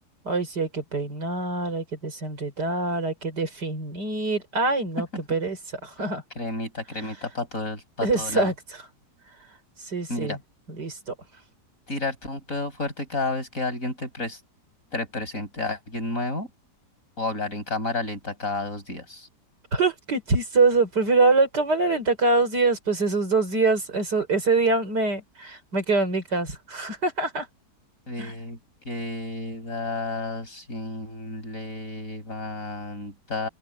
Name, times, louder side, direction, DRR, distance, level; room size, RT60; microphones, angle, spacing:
voice 1, 0.2-5.6 5.8-6.2 8.0-8.5 9.9-10.4 10.7-11.1 19.7-27.5 28.2-28.3, right 3 dB, 75° right, 5.6 m, -24 dB
voice 2, 6.4-8.5 10.1-10.4 11.9-14.4 14.9-16.5 17.2-19.3 28.1-28.6 28.9-33.5, left 2 dB, 50° left, 7.4 m, -31 dB
open air
omnidirectional pair, 1.8 m